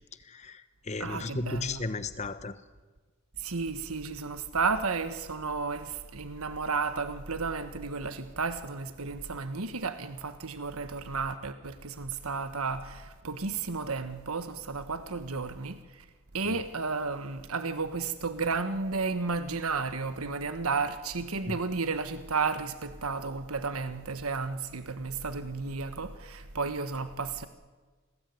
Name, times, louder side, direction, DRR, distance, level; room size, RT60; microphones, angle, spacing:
voice 1, 0.2-2.6 16.4-16.6 21.5-21.6, left 3 dB, 30° left, 1.1 m, -35 dB
voice 2, 1.0-1.8 3.4-16.0 16.3-27.5, right 4 dB, 90° right, 1.4 m, -33 dB
28.5 x 20.5 x 9.5 m
head